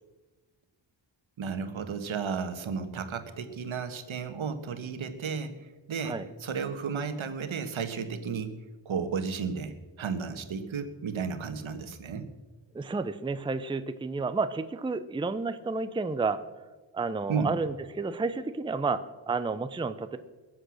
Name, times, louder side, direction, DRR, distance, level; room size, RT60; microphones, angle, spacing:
voice 1, 1.4-8.6 8.8-12.3 17.3-17.5, right 6 dB, 75° right, 8 dB, 1.5 m, -33 dB
voice 2, 12.7-16.4 16.9-20.2, right 4 dB, 10° right, 11 dB, 0.5 m, -31 dB
21.5 x 7.9 x 6.4 m, 1.2 s
wide cardioid pair, 125°, 48 cm